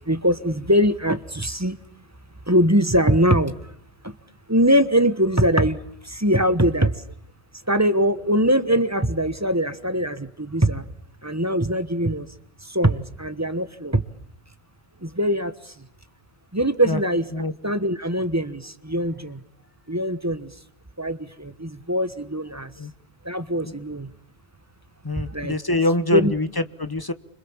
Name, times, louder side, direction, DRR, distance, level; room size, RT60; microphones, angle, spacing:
voice 1, 0.1-1.8 2.5-3.5 4.5-5.8 6.1-6.9 7.7-10.8 11.2-12.3 12.7-14.0 15.0-15.5 16.5-17.3 17.6-19.4 19.9-20.5 21.0-22.7 23.2-24.1 25.3-25.6 26.1-26.3, equal, 15° right, 11 dB, 1.3 m, -22 dB
voice 2, 25.0-27.1, left 2 dB, 20° left, 12 dB, 1.3 m, -24 dB
29.5 x 26.5 x 7.3 m, 0.67 s
omnidirectional pair, 1.1 m